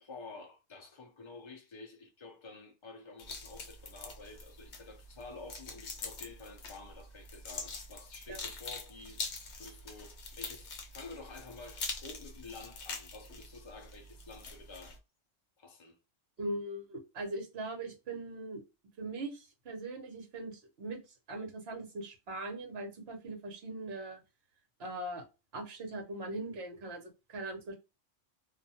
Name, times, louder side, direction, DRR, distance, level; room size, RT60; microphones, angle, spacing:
voice 1, 0.0-9.2 9.6-15.0 15.6-16.0, left 3 dB, 45° left, 0.4 m, -50 dB
sound 1, 3.2-15.0, left 3 dB, 65° left, 0.9 m, -44 dB
voice 2, 16.4-18.6 19.0-21.0 21.3-24.2 24.8-25.2 25.5-27.7, right 2 dB, 55° right, 1.1 m, -40 dB
2.5 x 2.3 x 2.7 m
omnidirectional pair, 1.3 m